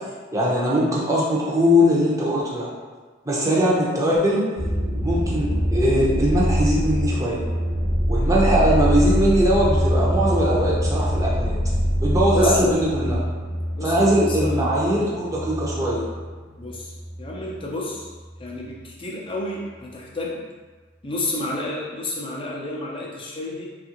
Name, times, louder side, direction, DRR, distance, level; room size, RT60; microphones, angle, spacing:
voice 1, 0.3-2.7 3.2-4.4 5.0-7.4 8.1-11.5 12.0-13.2 13.8-16.0, equal, 15° right, -6 dB, 0.7 m, -21 dB
sound 1, 4.6-17.6 17.9-18.5, equal, 85° right, 0.8 m, -24 dB
voice 2, 12.3-12.8 13.8-14.7 16.6-16.9 17.2-18.1 18.4-20.4 21.0-23.7, left 1 dB, 30° left, -3 dB, 0.5 m, -30 dB
3.4 x 2.4 x 2.9 m, 1.4 s
head